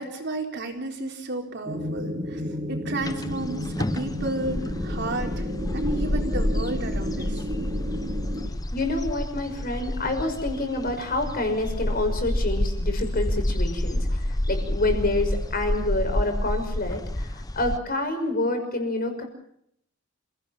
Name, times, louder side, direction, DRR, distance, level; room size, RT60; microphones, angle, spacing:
voice 1, 0.0-2.4 2.7-5.5 5.7-7.5, right 2 dB, 60° right, 2 dB, 4.1 m, -32 dB
sound 1, 1.6-8.5, left 1 dB, 35° right, 3.3 m, -32 dB
sound 2, 3.0-17.8, left 1 dB, 20° left, 0.8 m, -29 dB
voice 2, 8.7-19.2, left 2 dB, 45° left, 6 dB, 5.7 m, -28 dB
28.0 x 17.0 x 7.3 m, 0.72 s
head